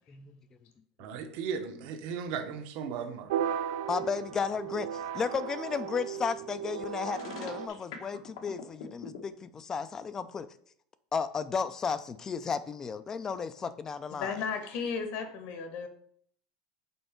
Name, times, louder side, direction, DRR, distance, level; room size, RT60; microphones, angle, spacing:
voice 1, 0.1-0.4 1.0-1.1 3.9-10.5 11.1-14.3, left 5 dB, 20° left, 0.3 m, -34 dB
voice 2, 1.0-3.3, right 6 dB, 55° right, 0.9 m, -36 dB
sound 1, 3.3-7.7, right 9 dB, 85° right, 0.4 m, -35 dB
sound 2, 7.0-9.2, left 6 dB, 80° left, 1.2 m, -43 dB
voice 3, 14.2-15.9, left 6 dB, 60° left, 1.2 m, -34 dB
5.5 x 4.3 x 4.4 m
supercardioid pair, 145°, 3 cm